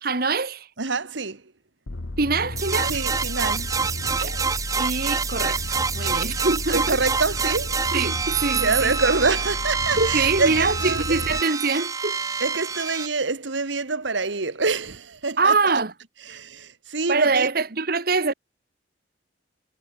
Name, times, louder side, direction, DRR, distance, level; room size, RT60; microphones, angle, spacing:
voice 1, 0.0-0.7 2.2-3.0 4.2-4.4 4.8-7.0 7.9-9.0 10.0-12.2 15.4-15.9 16.3-16.4 17.1-18.3, right 4 dB, 50° right, 1.4 m, -24 dB
voice 2, 0.8-1.4 2.9-3.7 6.7-7.8 8.5-11.2 12.4-15.6 16.3-17.5, right 4 dB, 75° right, 1.6 m, -26 dB
sound 1, 1.9-11.4, left 2 dB, 80° left, 1.3 m, -33 dB
sound 2, 2.6-13.1, right 5 dB, 15° right, 0.3 m, -27 dB
head